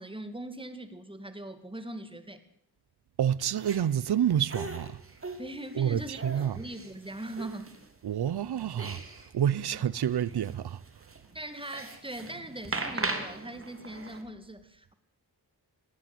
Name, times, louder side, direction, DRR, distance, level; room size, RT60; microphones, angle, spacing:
voice 1, 0.0-2.4 5.4-6.2 6.5-7.7 11.3-14.9, right 1 dB, 15° right, 2.4 m, -41 dB
voice 2, 3.2-5.0 5.7-6.6 8.0-9.0 9.3-10.8, right 9 dB, 75° right, 0.8 m, -28 dB
sound 1, 3.4-3.8 4.5-7.9 8.3-9.3 9.6-9.7 10.0-14.2, right 3 dB, 35° right, 3.1 m, -39 dB
19.0 x 18.5 x 7.8 m
wide cardioid pair, 120°, 39 cm